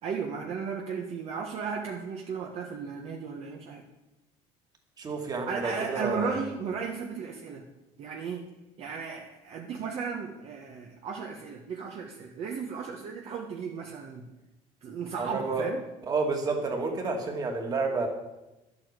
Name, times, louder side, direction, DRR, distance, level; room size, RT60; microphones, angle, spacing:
voice 1, 0.0-3.8 5.5-7.6 8.0-8.4 8.8-14.2 14.8-15.8, right 5 dB, 50° right, 1 dB, 1.4 m, -35 dB
voice 2, 5.0-6.4 15.2-15.7 16.1-18.1, right 3 dB, 30° right, 3 dB, 2.4 m, -30 dB
11.5 x 8.6 x 8.2 m, 1.0 s
cardioid pair, 150°, 14 cm